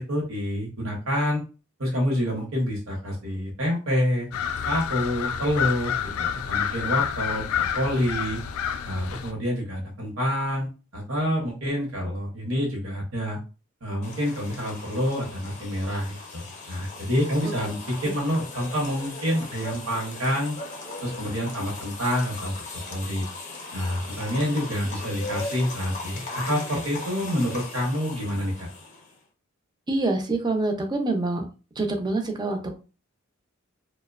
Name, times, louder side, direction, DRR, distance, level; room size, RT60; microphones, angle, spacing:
voice 1, 0.0-1.4 1.8-4.3 4.7-5.9 6.2-8.4 8.8-10.7 10.9-13.4 13.8-20.6 21.0-22.5 22.9-23.3 23.7-28.7, equal, 65° right, -2 dB, 0.8 m, -27 dB
sound 1, 4.3-9.3, left 8 dB, 80° left, 0.3 m, -28 dB
sound 2, 14.0-29.2, left 3 dB, 35° left, 0.6 m, -38 dB
voice 2, 29.9-31.4 31.8-32.8, right 2 dB, 20° right, 5 dB, 0.4 m, -26 dB
2.8 x 2.1 x 2.3 m, 0.33 s
head